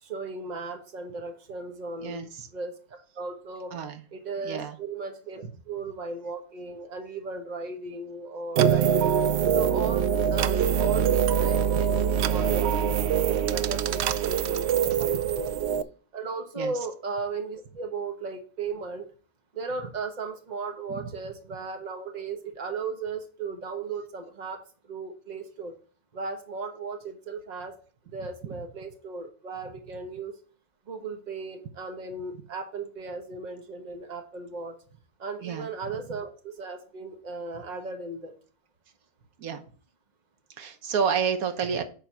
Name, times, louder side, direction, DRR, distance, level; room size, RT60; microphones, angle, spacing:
voice 1, 0.0-3.7 4.1-9.2 9.5-13.0 13.3-15.5 16.1-19.1 19.5-25.8 26.1-27.8 28.1-30.3 30.9-34.8 35.2-38.4, right 4 dB, 35° right, 5 dB, 1.1 m, -36 dB
voice 2, 2.0-2.5 3.7-4.0 4.4-4.8 5.4-5.5 14.9-15.3 16.6-16.7 20.9-21.1 35.4-35.7 39.4-39.6 40.6-41.8, right 6 dB, 85° right, 8 dB, 1.4 m, -30 dB
sound 1, 8.6-15.8, right 8 dB, 65° right, 0.7 m, -24 dB
9.0 x 3.9 x 5.8 m, 0.40 s
omnidirectional pair, 1.5 m